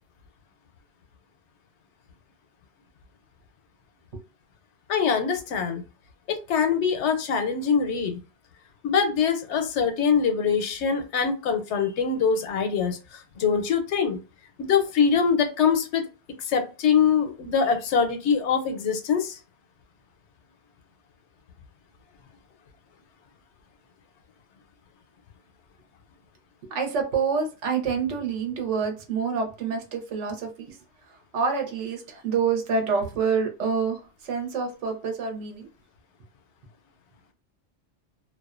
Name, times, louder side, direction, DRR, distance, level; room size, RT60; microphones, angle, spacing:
voice 1, 4.9-5.8 6.3-8.2 8.8-14.2 14.6-16.0 16.4-19.4, left 6 dB, 85° left, 6 dB, 0.9 m, -23 dB
voice 2, 26.6-30.8 31.3-35.7, right 5 dB, 90° right, 4 dB, 1.0 m, -27 dB
2.4 x 2.2 x 2.4 m, 0.31 s
omnidirectional pair, 1.2 m